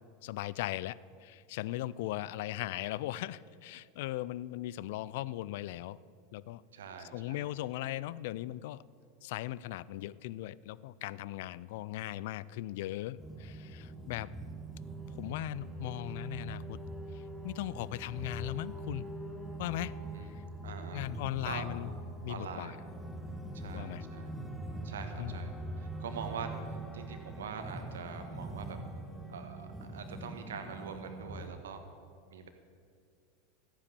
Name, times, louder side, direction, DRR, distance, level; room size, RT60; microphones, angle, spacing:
voice 1, 0.2-6.0 6.3-6.6 7.1-8.8 9.2-14.3 15.2-16.8 17.1-19.1 19.6-20.0 20.9-21.9 22.2-22.8 23.7-24.0 25.2-25.4, left 15 dB, 65° left, 19 dB, 0.4 m, -38 dB
voice 2, 6.7-7.5 20.1-20.3 20.6-21.1 21.4-21.7 22.3-22.8 23.5-24.3 24.8-25.5 25.8-26.5 26.9-28.8 29.3-31.8 32.3-32.5, right 6 dB, 75° right, 6 dB, 1.5 m, -44 dB
sound 1, 13.2-31.5, right 2 dB, ahead, 1.5 m, -43 dB
13.5 x 9.8 x 6.8 m, 2.2 s
hypercardioid pair, 90°, 0 cm